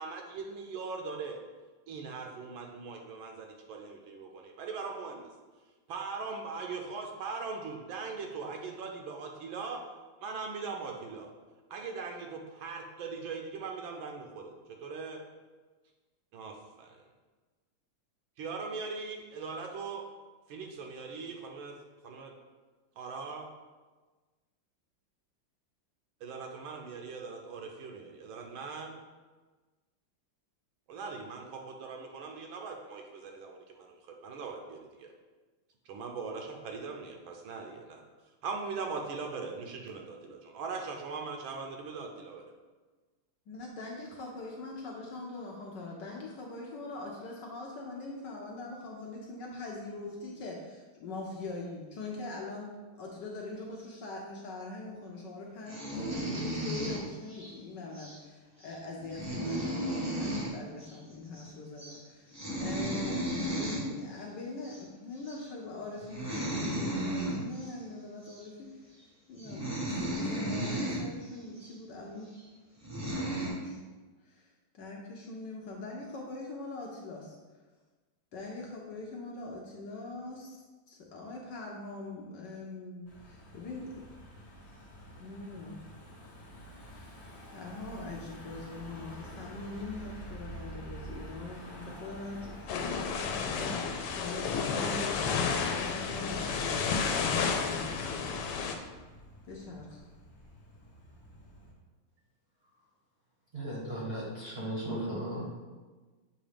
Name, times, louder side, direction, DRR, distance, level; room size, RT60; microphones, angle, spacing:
voice 1, 0.0-1.4 1.9-5.3 5.9-9.8 10.2-11.3 11.7-14.5 14.8-15.2 16.3-17.0 18.4-20.0 20.5-21.8 22.0-22.3 23.0-23.5 26.2-28.9 30.9-33.9 34.2-35.1 35.9-38.0 38.4-42.4, right 4 dB, 75° right, 2 dB, 1.4 m, -40 dB
voice 2, 43.5-63.3 63.6-68.9 69.3-72.3 72.9-73.8 74.3-74.5 74.7-77.4 78.3-80.6 80.9-84.0 85.2-85.8 86.9-87.2 87.5-97.9 99.4-100.0, left 3 dB, 65° left, -1 dB, 1.2 m, -42 dB
sound 1, 55.7-57.5 57.9-58.2 58.6-58.7 59.0-60.5 60.8-60.9 61.2-61.5 61.8-62.0 62.3-63.8 64.6-64.8 65.3-65.5 66.0-67.7 68.3-68.4 69.0-69.1 69.4-71.0 71.6-71.7 72.4-72.5 72.8-73.5, right 1 dB, 25° right, 0.3 m, -34 dB
Car passing by / Engine, 83.1-101.7, equal, 40° left, 0.9 m, -48 dB
sound 2, 92.7-98.8, left 5 dB, 85° left, 1.6 m, -31 dB
voice 3, 103.5-105.5, right 1 dB, 40° right, -5 dB, 0.8 m, -36 dB
7.1 x 2.7 x 5.0 m, 1.3 s
omnidirectional pair, 2.4 m